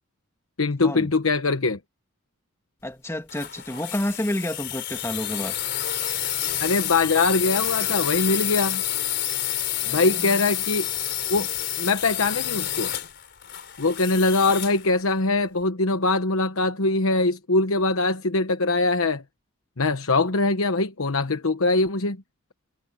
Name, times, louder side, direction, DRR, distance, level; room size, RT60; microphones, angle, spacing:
voice 1, 0.6-1.8 6.6-8.8 9.9-10.9 11.3-11.5 11.8-12.9 13.8-19.2 19.8-22.2, left 3 dB, 85° left, 1.1 m, -22 dB
voice 2, 2.8-5.5 9.8-10.4, left 1 dB, 15° left, 2.0 m, -30 dB
sound 1, 3.3-14.9, left 12 dB, 55° left, 4.2 m, -29 dB
head